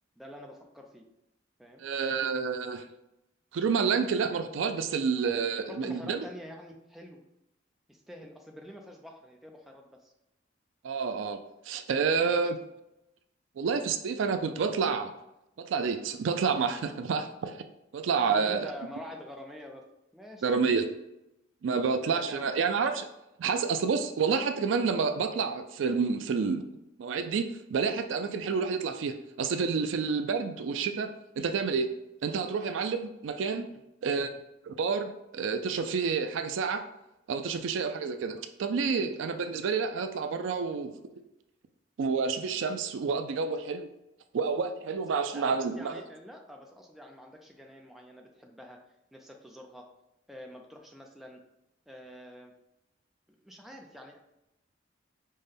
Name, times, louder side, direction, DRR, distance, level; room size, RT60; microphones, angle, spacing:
voice 1, 0.2-1.1 1.6-1.8 5.6-7.2 7.9-10.1 12.2-12.5 18.1-19.8 20.1-20.5 21.8-22.6 34.3-34.4 37.5-37.6 38.9-39.0 43.4-43.5 45.3-48.8 49.1-49.9 50.3-51.4 51.9-52.5 53.3-54.2, equal, ahead, 1 dB, 0.4 m, -47 dB
voice 2, 1.8-2.8 3.5-6.2 10.8-11.4 11.7-12.6 13.6-15.1 15.6-17.6 17.9-18.7 20.4-20.9 21.6-23.1 23.4-26.7 27.0-31.9 32.2-33.7 34.0-34.3 34.7-36.9 37.3-41.0 42.0-43.9 44.3-46.0, right 5 dB, 75° right, 8 dB, 0.4 m, -29 dB
5.4 x 2.2 x 3.4 m, 0.88 s
head